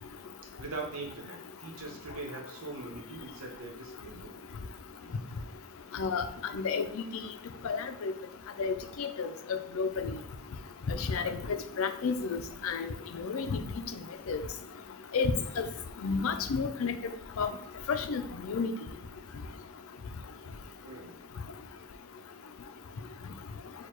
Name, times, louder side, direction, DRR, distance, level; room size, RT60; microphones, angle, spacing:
voice 1, 0.5-4.3 5.0-5.1 20.8-21.1, right 3 dB, 85° right, 1 dB, 1.0 m, -42 dB
voice 2, 5.9-6.2 6.5-6.8 7.6-8.1 8.6-10.1 10.9-11.4 11.8-13.6 14.3-14.4 15.1-15.6 16.0-17.0 17.4-17.5 17.9-18.7, left 5 dB, 80° left, 9 dB, 0.4 m, -31 dB
6.5 x 2.3 x 3.0 m, 0.68 s
head